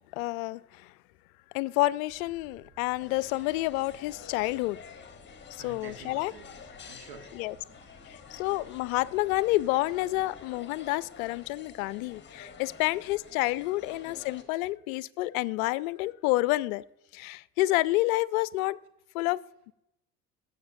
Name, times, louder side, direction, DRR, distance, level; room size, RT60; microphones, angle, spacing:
voice 1, 0.1-0.9 1.5-4.8 5.5-6.3 7.4-7.5 8.0-16.8 17.1-18.8 19.1-19.7, left 19 dB, 65° left, 0.5 m, -29 dB
sound 1, 2.1-10.5, right 2 dB, 20° right, 1.5 m, -59 dB
sound 2, 3.0-14.4, left 6 dB, 25° left, 1.3 m, -49 dB
voice 2, 5.6-8.5 12.2-12.6 13.8-13.9, right 4 dB, 55° right, 1.6 m, -51 dB
16.5 x 6.5 x 2.7 m
hypercardioid pair, 65°, 46 cm